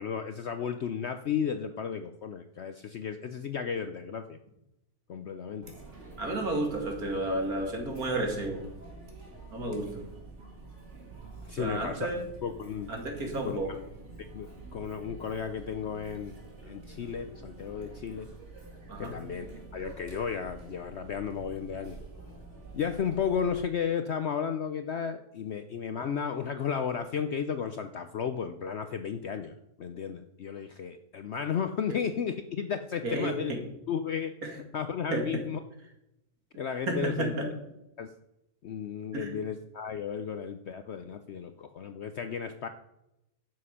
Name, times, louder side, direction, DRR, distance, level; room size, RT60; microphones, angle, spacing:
voice 1, 0.0-4.4 5.1-5.7 11.4-12.1 12.4-12.9 13.4-13.8 14.2-16.4 16.6-18.3 19.0-22.0 22.7-33.5 33.9-34.3 34.7-35.6 36.6-37.3 38.0-38.1 38.6-42.7, left 7 dB, 60° left, 9 dB, 0.7 m, -34 dB
Chatter, 5.6-23.5, right 3 dB, 45° right, 2.4 m, -48 dB
voice 2, 6.2-8.6 9.5-10.0 11.5-12.2 12.9-13.7 18.9-19.1 31.9-32.0 33.0-33.6 34.4-34.5 35.1-35.3 36.9-37.5 39.1-39.3, right 2 dB, 65° right, 2 dB, 2.7 m, -32 dB
11.0 x 7.7 x 5.6 m, 0.88 s
omnidirectional pair, 1.7 m